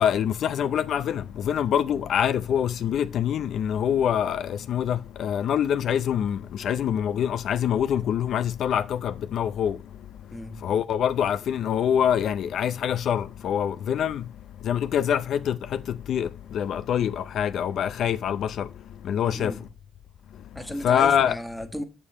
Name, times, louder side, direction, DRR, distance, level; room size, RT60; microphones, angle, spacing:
voice 1, 0.0-9.8 10.6-14.2 14.6-18.7 19.0-19.5 20.8-21.4, left 9 dB, 65° left, 0.5 m, -25 dB
voice 2, 10.3-10.6 19.2-19.6 20.5-21.8, equal, ahead, 1.4 m, -35 dB
7.2 x 6.9 x 4.3 m
cardioid pair, 90°, 0 cm